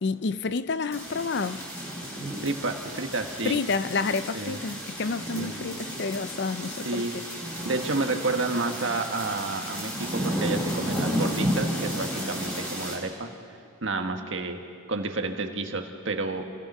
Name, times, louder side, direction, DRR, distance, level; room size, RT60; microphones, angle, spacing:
voice 1, 0.0-1.6 3.4-7.2, left 4 dB, 55° left, 0.5 m, -29 dB
sound 1, 0.9-13.0, equal, 15° left, 4.9 m, -32 dB
voice 2, 2.4-3.6 4.3-4.6 5.4-5.6 6.8-7.2 7.6-13.3 13.8-14.6 14.9-16.5, right 3 dB, 70° right, 1.6 m, -30 dB
27.5 x 18.5 x 5.6 m
head